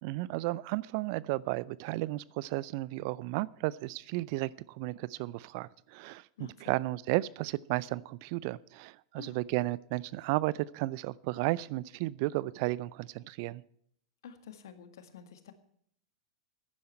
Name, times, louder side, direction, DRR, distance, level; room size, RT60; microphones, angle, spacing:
voice 1, 0.0-13.6, right 19 dB, 50° right, 21 dB, 0.5 m, -33 dB
voice 2, 6.4-6.8 9.2-9.4 14.2-15.5, left 8 dB, 65° left, 9 dB, 1.8 m, -49 dB
15.0 x 10.5 x 4.4 m, 0.66 s
hypercardioid pair, 95°, 2 cm